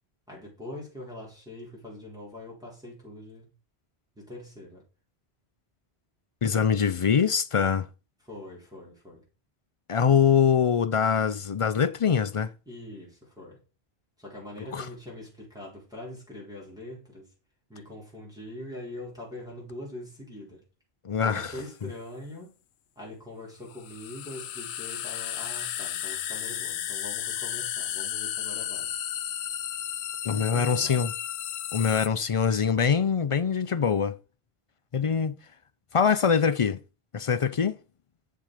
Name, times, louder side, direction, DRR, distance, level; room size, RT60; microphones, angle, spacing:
voice 1, 0.3-3.5 4.1-4.8 8.2-9.2 12.7-13.6 14.2-17.3 17.7-20.6 21.2-22.5 22.9-28.9 30.3-31.0, left 1 dB, 5° right, 4.6 m, -43 dB
voice 2, 6.4-7.9 9.9-12.5 14.7-14.8 21.0-21.5 30.2-31.1 31.7-34.2 34.9-35.4 35.9-36.8 37.1-37.7, left 7 dB, 50° left, 0.4 m, -23 dB
sound 1, 21.6-21.7 23.7-32.1, left 11 dB, 80° left, 0.9 m, -33 dB
7.6 x 6.9 x 5.0 m
omnidirectional pair, 1.1 m